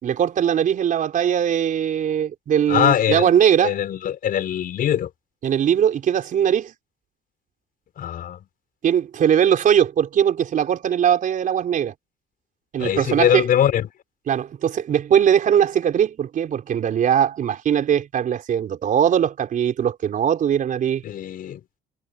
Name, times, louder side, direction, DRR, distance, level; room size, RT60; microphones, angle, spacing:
voice 1, 0.0-3.7 5.4-6.7 8.8-11.9 12.7-13.4 14.3-21.0, right 9 dB, 50° right, 4.5 m, -20 dB
voice 2, 2.7-3.3 3.6-5.1 8.0-8.4 12.8-13.9 21.0-21.6, left 10 dB, 60° left, 6.3 m, -22 dB
cardioid pair, 110°, 17 cm